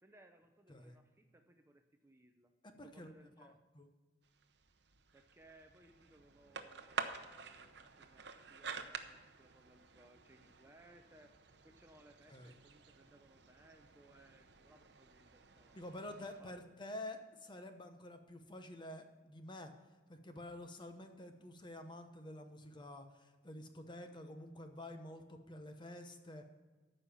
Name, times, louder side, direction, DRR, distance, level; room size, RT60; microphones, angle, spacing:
voice 1, 0.0-2.5 2.8-3.6 5.1-11.3 11.6-15.8 16.2-16.7, right 1 dB, 15° right, 5 dB, 0.6 m, -64 dB
voice 2, 2.6-3.1 3.4-3.9 12.3-12.5 15.7-19.7 20.1-26.5, left 1 dB, 25° left, 6 dB, 0.9 m, -49 dB
sound 1, 4.2-16.4, right 5 dB, 65° right, 0.8 m, -50 dB
14.0 x 5.5 x 7.0 m, 1.3 s
head